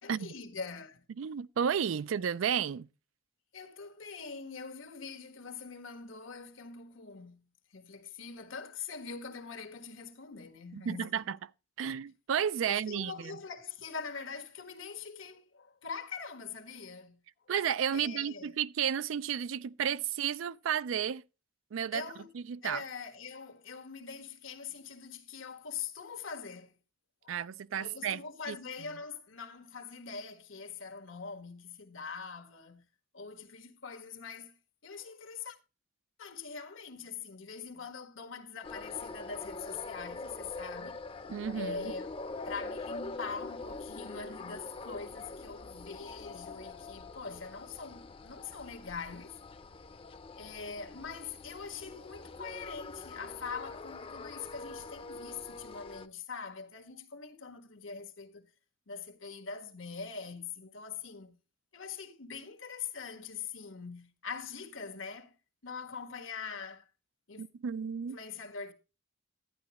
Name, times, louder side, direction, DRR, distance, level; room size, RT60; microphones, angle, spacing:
voice 1, 0.0-1.0 3.5-11.2 12.6-17.2 17.9-18.5 21.9-22.3 22.6-26.7 27.2-27.4 27.8-32.8 33.1-34.6 34.8-35.6 36.2-41.0 41.5-42.1 42.4-49.4 50.4-58.5 58.9-61.4 61.7-65.3 65.6-66.8 67.3-67.4 68.1-68.7, left 5 dB, 90° left, 1.5 m, -43 dB
voice 2, 1.2-2.9 10.7-11.4 11.8-13.4 17.5-21.2 21.7-22.1 22.3-22.8 27.3-28.6 41.3-41.9 67.4-68.2, right 8 dB, 85° right, 0.4 m, -32 dB
sound 1, 38.6-56.1, left 3 dB, 30° left, 0.6 m, -44 dB
11.5 x 9.5 x 3.0 m
head